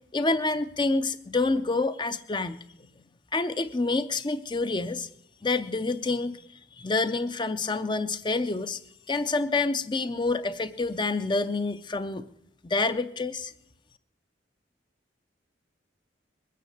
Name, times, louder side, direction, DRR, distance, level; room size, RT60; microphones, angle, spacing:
voice 1, 0.1-2.9 3.3-5.1 5.4-6.4 6.8-8.8 9.1-12.2 12.6-13.5, left 3 dB, 25° left, 11 dB, 0.5 m, -27 dB
21.0 x 9.2 x 6.7 m, 0.81 s
head